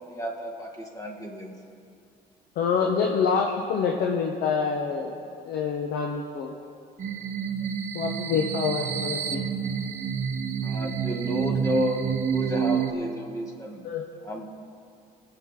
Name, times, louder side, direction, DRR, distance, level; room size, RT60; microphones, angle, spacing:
voice 1, 0.1-1.5 10.6-12.0 12.3-13.8 14.2-14.5, left 1 dB, 20° left, 1 dB, 2.0 m, -32 dB
voice 2, 2.6-5.1 5.4-6.5 7.9-9.5 13.8-14.1, left 5 dB, 75° left, 1 dB, 1.1 m, -26 dB
sound 1, 7.0-12.9, right 7 dB, 45° right, 1.0 m, -28 dB
23.0 x 7.9 x 3.8 m, 2.5 s
cardioid pair, 110°, 17 cm